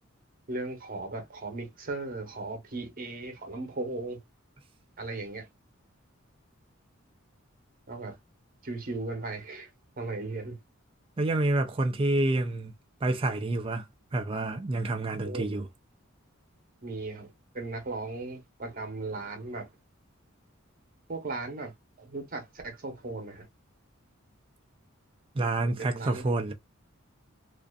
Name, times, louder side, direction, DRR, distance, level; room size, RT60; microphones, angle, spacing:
voice 1, 0.5-4.2 5.0-5.5 7.9-8.2 8.6-9.7 10.0-10.6 15.2-15.6 16.8-19.7 21.1-23.5 25.6-26.3, right 3 dB, 45° right, 0.8 m, -37 dB
voice 2, 11.2-12.7 13.0-13.8 14.1-15.7 25.4-26.5, right 2 dB, 25° right, 0.3 m, -28 dB
2.5 x 2.3 x 2.2 m
head